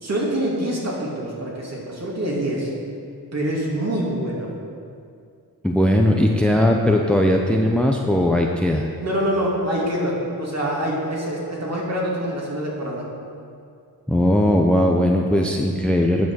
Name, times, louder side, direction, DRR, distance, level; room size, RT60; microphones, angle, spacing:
voice 1, 0.0-2.7 3.3-4.5 9.0-13.1, right 1 dB, 40° right, -4 dB, 2.7 m, -25 dB
voice 2, 5.6-8.9 14.1-16.3, left 1 dB, 5° left, 1 dB, 0.7 m, -18 dB
9.5 x 6.2 x 6.2 m, 2.3 s
cardioid pair, 80°, 39 cm